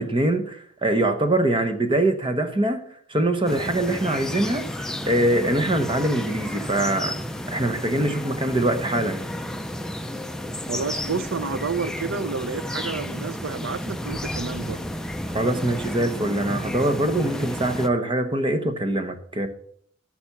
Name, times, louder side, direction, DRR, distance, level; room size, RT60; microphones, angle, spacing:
voice 1, 0.0-2.8 3.1-7.2 7.5-9.3 15.3-19.5, right 1 dB, 25° right, 0.9 m, -23 dB
sound 1, 3.5-17.9, equal, 5° left, 0.5 m, -32 dB
voice 2, 10.7-14.8, right 5 dB, 70° right, 0.6 m, -30 dB
13.0 x 4.4 x 7.1 m
head